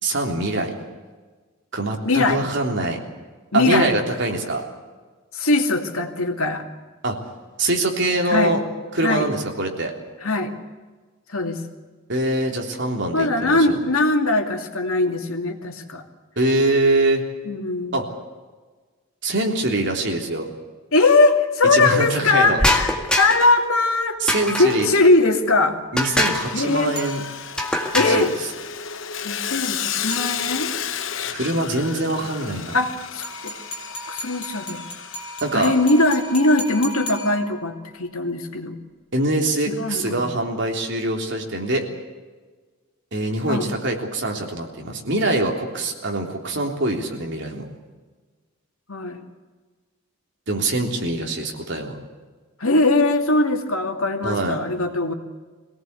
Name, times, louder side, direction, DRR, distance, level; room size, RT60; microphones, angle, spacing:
voice 1, 0.0-0.7 1.7-3.0 3.5-4.6 7.0-7.2 7.6-8.6 8.9-9.9 12.1-13.8 16.4-17.2 17.9-18.1 19.2-20.5 21.6-22.6 24.2-24.9 25.9-27.2 28.0-28.3 31.3-32.8 35.4-35.7 39.1-41.8 43.1-47.6 50.5-52.0 54.2-54.6, right 2 dB, 55° right, 2 dB, 3.5 m, -23 dB
voice 2, 2.0-2.4 3.5-3.9 5.3-6.6 8.2-8.6 9.0-9.3 10.2-10.5 11.3-11.6 13.1-16.0 17.4-18.0 20.9-24.2 24.6-25.8 26.5-27.0 27.9-28.3 29.2-30.7 32.7-33.5 33.9-34.8 35.5-38.8 39.7-40.2 43.5-43.7 48.9-49.2 52.6-55.1, left 2 dB, 75° left, 4 dB, 2.5 m, -20 dB
sound 1, 22.6-23.6 24.3-24.9 26.0-26.5 27.6-28.3, left 1 dB, 5° left, 1.8 m, -23 dB
Sawing, 26.3-36.5, left 9 dB, 60° left, 0.9 m, -32 dB
sound 2, 27.0-27.8 30.1-30.8 33.2-37.8, equal, 25° left, 7.3 m, -36 dB
23.5 x 17.5 x 8.3 m, 1.4 s
head